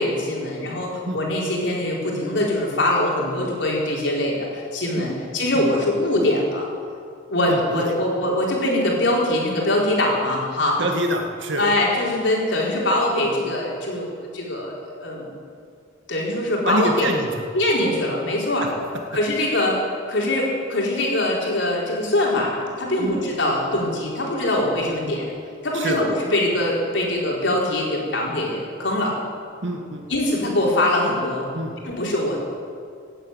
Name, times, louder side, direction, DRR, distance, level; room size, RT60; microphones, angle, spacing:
voice 1, 0.0-6.7 7.3-10.8 11.6-15.3 16.1-17.1 17.5-18.7 19.1-19.8 20.1-25.3 25.6-29.1 30.1-31.5 31.8-32.4, left 1 dB, 70° left, -3 dB, 4.3 m, -23 dB
voice 2, 7.5-7.8 10.8-11.6 16.6-17.4 23.0-23.1 25.1-25.2 25.7-26.0 29.6-30.0 31.5-31.7, right 1 dB, 75° right, 3 dB, 2.1 m, -26 dB
17.0 x 9.0 x 9.2 m, 2.3 s
head